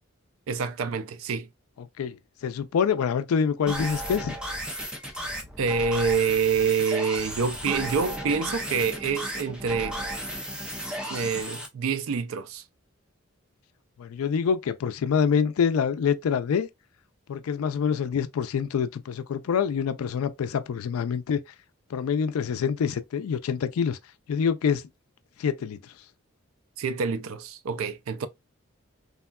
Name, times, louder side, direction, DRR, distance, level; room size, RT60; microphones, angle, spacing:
voice 1, 0.5-1.5 5.6-10.0 11.1-12.6 26.8-28.3, right 5 dB, 75° right, 0.4 m, -27 dB
voice 2, 2.4-4.4 14.0-16.7 17.3-21.4 21.9-24.0 24.3-24.8 25.4-25.8, left 7 dB, 85° left, 0.4 m, -26 dB
sound 1, 3.7-11.7, right 1 dB, 5° right, 0.4 m, -34 dB
3.4 x 2.2 x 2.2 m
head